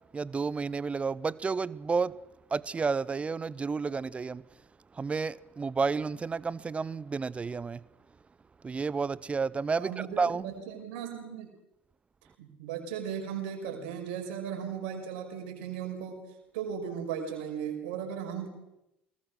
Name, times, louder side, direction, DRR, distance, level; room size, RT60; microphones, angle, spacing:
voice 1, 0.1-2.1 2.5-4.4 4.9-7.8 8.6-10.5, right 4 dB, 20° right, 0.7 m, -31 dB
voice 2, 9.8-11.5 12.4-16.3 16.5-18.5, right 8 dB, 60° right, 5.6 m, -36 dB
23.5 x 20.5 x 6.5 m
figure-of-eight pair, 65°, 6 cm